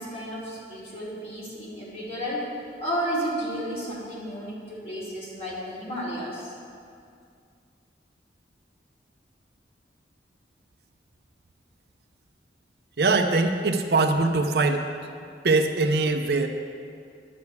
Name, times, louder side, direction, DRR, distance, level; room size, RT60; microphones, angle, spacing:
voice 1, 0.0-2.5 2.8-6.5, equal, 35° left, -7 dB, 2.8 m, -32 dB
voice 2, 13.0-14.9 15.4-16.5, right 3 dB, 60° right, 6 dB, 0.6 m, -22 dB
10.5 x 5.0 x 8.2 m, 2.3 s
head